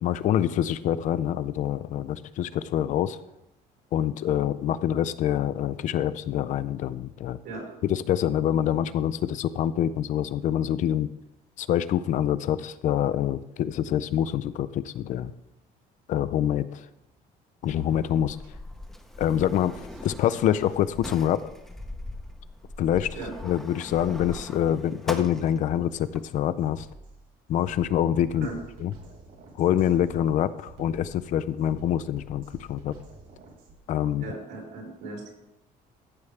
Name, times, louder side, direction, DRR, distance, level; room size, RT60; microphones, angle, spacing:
voice 1, 0.0-3.2 3.9-7.4 7.8-11.1 11.6-15.3 16.1-16.9 17.6-18.4 19.2-21.5 22.8-26.9 27.5-28.5 28.8-28.9 29.6-32.9 33.9-34.2, left 10 dB, 50° left, 14 dB, 0.4 m, -26 dB
voice 2, 7.4-7.8 23.2-23.3 28.4-28.5 34.2-35.3, right 3 dB, 90° right, -3 dB, 4.1 m, -37 dB
Sliding door, 17.6-26.2, left 1 dB, ahead, 0.6 m, -41 dB
Drum kit, 25.9-26.1 26.6-33.8, right 3 dB, 60° right, 2.1 m, -48 dB
14.5 x 7.0 x 3.3 m, 0.91 s
cardioid pair, 165°, 16 cm